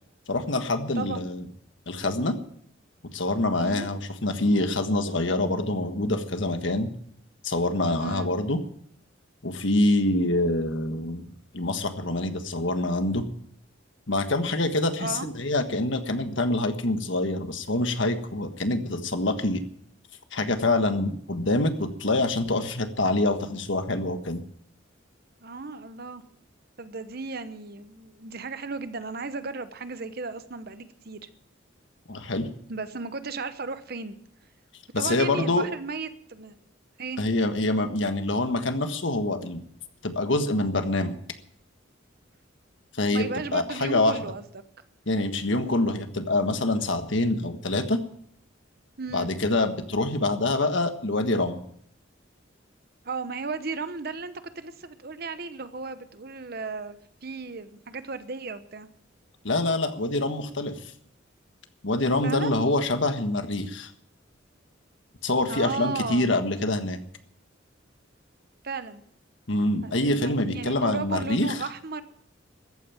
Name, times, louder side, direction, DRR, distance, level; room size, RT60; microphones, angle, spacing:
voice 1, 0.3-1.4 1.9-2.4 3.1-6.9 7.4-8.6 9.4-13.3 14.1-19.6 20.3-24.4 32.1-32.5 34.9-35.7 37.2-39.6 40.0-41.2 42.9-43.2 43.5-44.2 45.1-48.0 49.1-51.6 59.4-60.9 61.8-63.9 65.2-67.0 69.5-71.6, left 2 dB, 70° left, 8 dB, 1.6 m, -25 dB
voice 2, 0.9-1.3 3.6-3.9 8.0-8.3 15.0-15.3 25.4-26.2 26.8-31.3 32.7-34.2 35.0-36.5 37.0-37.2 43.1-44.4 49.0-49.3 53.0-58.9 62.2-62.5 65.5-66.3 68.6-69.0 69.8-72.0, right 4 dB, 50° right, 11 dB, 1.0 m, -35 dB
14.5 x 9.3 x 9.0 m, 0.68 s
head